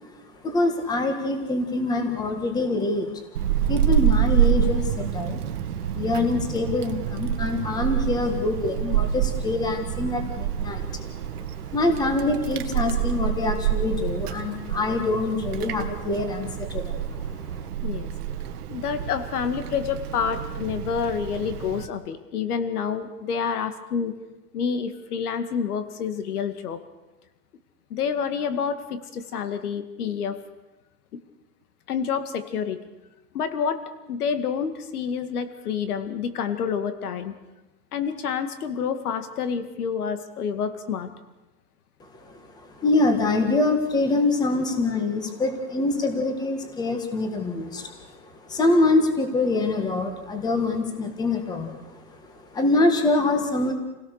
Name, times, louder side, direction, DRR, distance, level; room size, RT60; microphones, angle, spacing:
voice 1, 0.4-3.2 3.7-5.4 5.9-11.4 11.7-17.5 42.2-42.3 42.6-48.1 48.5-51.8 52.5-53.7, left 2 dB, 10° left, 6 dB, 1.6 m, -25 dB
Wind, 3.4-21.9, right 10 dB, 70° right, 1.7 m, -27 dB
voice 2, 18.7-24.1 24.5-26.8 27.9-30.4 31.1-31.2 31.9-32.8 33.3-33.8 34.1-37.3 37.9-41.1, left 7 dB, 65° left, 10 dB, 2.2 m, -28 dB
28.5 x 17.0 x 6.6 m, 1.1 s
hypercardioid pair, 160°, 47 cm